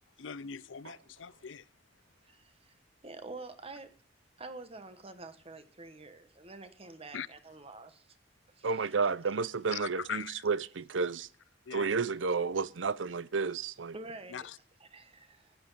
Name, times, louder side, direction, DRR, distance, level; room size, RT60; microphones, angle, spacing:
voice 1, 0.2-1.6 7.1-7.3 9.7-10.3 11.7-11.9 14.3-14.6, left 7 dB, 80° left, 0.6 m, -40 dB
voice 2, 2.3-2.7 3.0-3.9 4.4-8.1 8.6-8.9 13.9-14.5 14.8-15.6, right 3 dB, 30° right, 1.3 m, -47 dB
voice 3, 8.6-11.3 11.7-13.9, right 4 dB, 85° right, 0.7 m, -31 dB
14.5 x 9.8 x 5.7 m
head